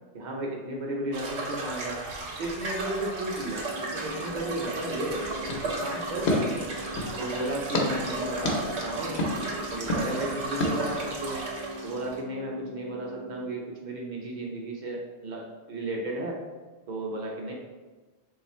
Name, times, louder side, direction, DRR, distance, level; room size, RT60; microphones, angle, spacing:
voice 1, 0.1-2.0 2.4-6.7 7.2-9.2 9.5-11.4 11.8-16.4 16.9-17.5, right 1 dB, 50° right, -1 dB, 0.7 m, -34 dB
sound 1, 1.1-12.2, right 2 dB, 80° right, 1.0 m, -35 dB
sound 2, 3.4-13.4, right 1 dB, 40° left, 0.5 m, -41 dB
sound 3, 5.5-7.2 7.7-7.9 8.4-8.6 9.2-9.3 9.9-10.0 10.6-10.7, left 1 dB, 60° left, 0.8 m, -29 dB
3.2 x 2.4 x 4.2 m, 1.3 s
omnidirectional pair, 1.1 m